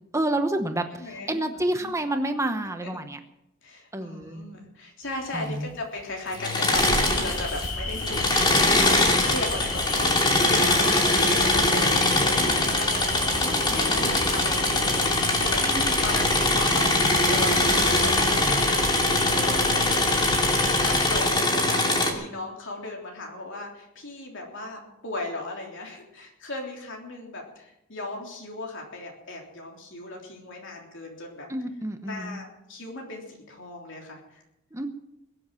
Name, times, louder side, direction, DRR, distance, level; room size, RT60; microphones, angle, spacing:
voice 1, 0.1-0.8 1.3-3.2 3.9-4.4 5.3-5.7 13.5-14.0 15.6-15.9 31.5-32.4 34.7-34.9, right 1 dB, 15° right, 7 dB, 1.0 m, -29 dB
voice 2, 0.9-1.9 2.8-2.9 3.6-10.2 10.5-15.6 16.0-31.5 32.0-34.4, left 2 dB, 60° left, 0 dB, 3.4 m, -37 dB
Engine / Mechanisms, 6.3-7.7 8.0-22.1, left 2 dB, 20° left, 2.6 m, -22 dB
sound 1, 6.7-21.2, left 2 dB, 90° left, 4.6 m, -33 dB
22.0 x 7.9 x 7.6 m, 0.85 s
head